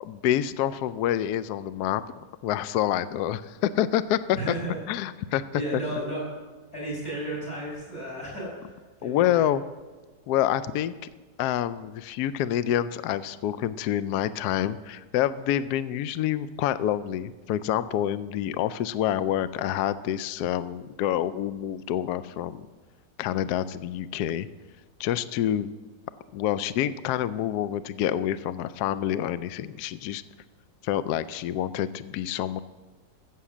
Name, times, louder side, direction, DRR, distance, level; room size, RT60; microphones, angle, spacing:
voice 1, 0.0-2.0 2.4-4.6 4.9-5.4 9.0-9.6 10.3-10.9 11.4-22.7 23.2-24.5 25.0-25.7 26.3-30.2 30.8-32.6, left 11 dB, 70° left, 15 dB, 1.0 m, -27 dB
voice 2, 4.4-4.8 5.5-6.2 6.7-8.7 9.0-9.5, right 1 dB, 40° left, -5 dB, 5.8 m, -33 dB
14.0 x 7.8 x 7.3 m, 1.3 s
omnidirectional pair, 2.0 m